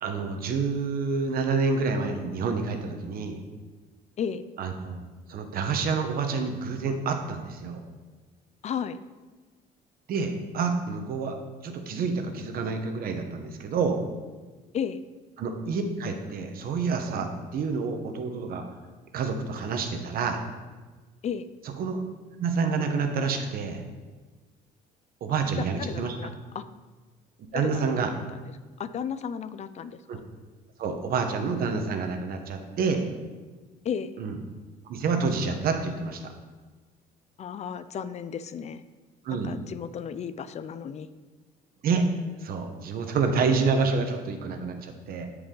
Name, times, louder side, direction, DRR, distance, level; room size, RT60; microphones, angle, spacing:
voice 1, 0.0-3.4 4.6-5.0 5.3-7.8 10.1-11.4 11.6-14.0 15.4-18.6 19.1-20.4 21.8-22.0 22.4-23.8 25.2-26.2 27.5-28.1 30.1-30.2 30.8-33.0 34.2-34.4 34.8-36.3 39.2-39.5 41.8-42.0 42.4-45.3, right 4 dB, 60° right, 5 dB, 1.1 m, -28 dB
voice 2, 8.6-9.0 14.7-15.0 21.2-21.5 25.6-26.7 27.5-28.4 28.8-30.2 33.8-34.2 37.4-38.8 39.3-41.1, left 7 dB, 40° left, 14 dB, 0.4 m, -34 dB
13.0 x 4.9 x 3.9 m, 1.3 s
cardioid pair, 110°, 17 cm